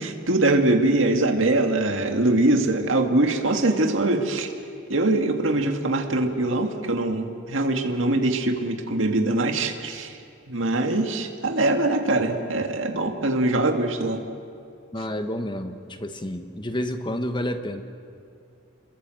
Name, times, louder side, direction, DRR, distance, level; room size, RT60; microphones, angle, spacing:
voice 1, 0.0-4.5 4.9-10.2 10.5-14.2, right 2 dB, 65° right, 4 dB, 2.1 m, -23 dB
voice 2, 14.9-17.8, left 1 dB, 20° left, 8 dB, 1.3 m, -30 dB
28.5 x 22.5 x 7.8 m, 2.5 s
head